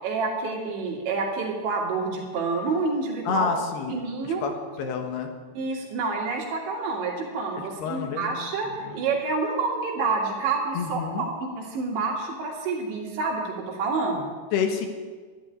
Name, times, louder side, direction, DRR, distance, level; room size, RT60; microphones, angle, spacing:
voice 1, 0.0-3.5 3.9-4.4 5.5-11.3 11.6-14.3, right 4 dB, 85° right, 0 dB, 5.0 m, -28 dB
voice 2, 3.3-4.0 4.2-4.5 4.8-5.3 7.8-8.4 8.8-9.0 10.7-11.2 14.5-14.9, left 6 dB, 70° left, 5 dB, 3.2 m, -28 dB
13.0 x 11.0 x 9.2 m, 1.5 s
omnidirectional pair, 5.1 m